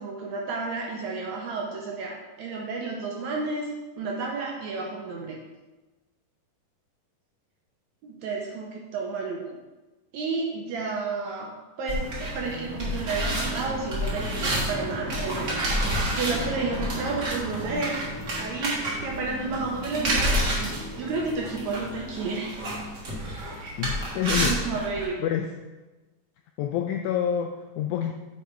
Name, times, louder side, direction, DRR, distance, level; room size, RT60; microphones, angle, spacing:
voice 1, 0.0-3.7 4.0-5.4 8.0-9.6 10.1-11.5 11.8-18.0 18.4-22.6 23.6-23.7 24.3-25.2, right 4 dB, 75° right, -1 dB, 1.8 m, -31 dB
sound 1, 11.9-25.1, right 1 dB, 45° right, 1.5 m, -29 dB
voice 2, 23.8-24.6 25.2-25.5 26.6-28.1, left 9 dB, 85° left, 3 dB, 1.7 m, -27 dB
8.1 x 4.2 x 4.6 m, 1.2 s
omnidirectional pair, 3.9 m